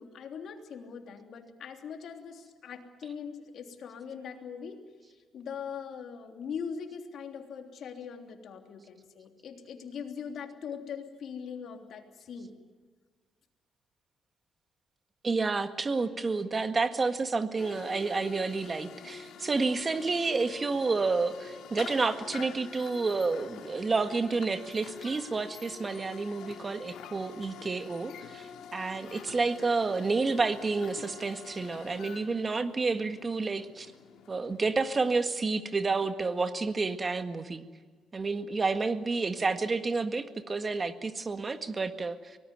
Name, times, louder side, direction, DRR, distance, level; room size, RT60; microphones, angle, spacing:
voice 1, 0.0-4.8 5.3-12.5, left 6 dB, 65° left, 4 dB, 3.2 m, -41 dB
voice 2, 15.2-33.9 34.3-37.7 38.1-42.4, right 4 dB, 30° right, 8 dB, 1.7 m, -30 dB
sound 1, 17.6-35.2, left 7 dB, 85° left, 2.5 m, -47 dB
24.5 x 19.0 x 9.4 m, 1.5 s
cardioid pair, 90°, 0 cm